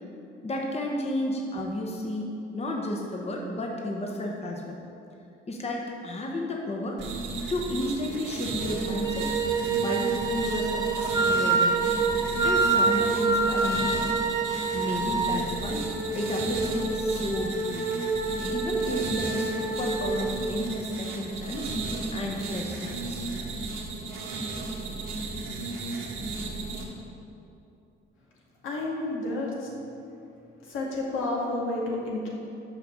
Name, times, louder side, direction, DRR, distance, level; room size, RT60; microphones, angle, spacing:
voice 1, 0.4-4.8 5.5-7.0 7.5-9.3 9.8-11.8 12.4-14.1 14.7-15.8 16.1-17.9 18.4-21.7 22.1-23.3, left 1 dB, 30° left, 0 dB, 1.0 m, -32 dB
sound 1, 7.0-26.8, right 3 dB, 70° right, 1.4 m, -34 dB
sound 2, 8.6-20.3, right 5 dB, 90° right, 1.1 m, -30 dB
Wind instrument woodwind instrument, 9.0-15.4, right 2 dB, 20° right, 0.7 m, -27 dB
voice 2, 28.6-29.7 30.7-32.3, left 2 dB, 85° left, -4 dB, 1.8 m, -30 dB
6.5 x 5.2 x 6.4 m, 2.8 s
cardioid pair, 90°, 20 cm